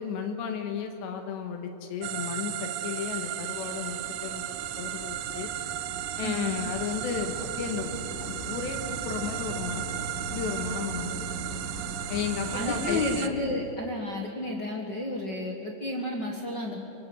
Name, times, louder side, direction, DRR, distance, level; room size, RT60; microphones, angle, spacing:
voice 1, 0.0-4.4 4.8-5.5 6.2-10.1 10.3-11.1 12.1-13.0, left 7 dB, 85° left, 5 dB, 3.9 m, -34 dB
sound 1, 2.0-13.3, right 12 dB, 80° right, 2.1 m, -35 dB
sound 2, 3.7-13.3, right 1 dB, 5° left, 1.5 m, -40 dB
voice 2, 6.2-6.6 10.9-11.2 12.4-16.8, left 2 dB, 60° left, 0 dB, 1.1 m, -32 dB
25.0 x 24.0 x 7.9 m, 2.9 s
omnidirectional pair, 4.9 m